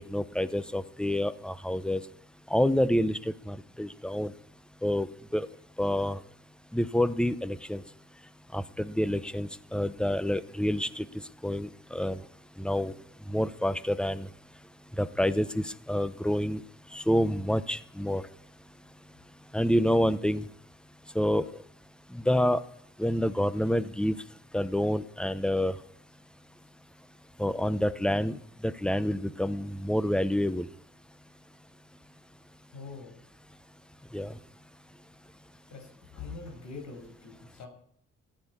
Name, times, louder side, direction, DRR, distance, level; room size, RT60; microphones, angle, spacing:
voice 1, 0.0-2.0 2.5-4.3 4.8-5.5 5.8-6.2 6.7-7.8 8.5-11.1 11.4-12.2 12.6-12.9 13.3-14.3 15.0-16.6 16.9-18.2 19.5-20.4 21.1-21.5 22.1-22.6 23.0-24.1 24.5-25.7 27.4-28.4 28.6-30.7 34.1-34.3, equal, 5° left, 14 dB, 0.9 m, -28 dB
voice 2, 32.7-33.1 35.7-35.9 36.1-37.7, left 4 dB, 75° left, 3 dB, 6.3 m, -43 dB
14.5 x 10.5 x 8.6 m, 0.68 s
cardioid pair, 90°, 30 cm